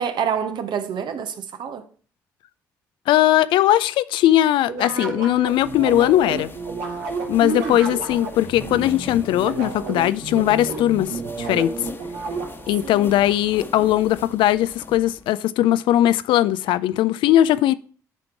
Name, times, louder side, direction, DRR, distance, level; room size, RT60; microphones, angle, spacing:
voice 1, 0.0-1.8 7.4-7.9 12.8-13.1, right 7 dB, 60° right, 0.9 m, -27 dB
voice 2, 3.1-6.5 7.3-11.8 12.7-17.7, left 13 dB, 70° left, 0.3 m, -19 dB
sound 1, 4.7-12.8, right 3 dB, 90° right, 1.2 m, -31 dB
Running in a silk dress, 5.4-15.3, left 2 dB, 25° left, 1.1 m, -41 dB
10.5 x 3.7 x 4.6 m
hypercardioid pair, 50°, 9 cm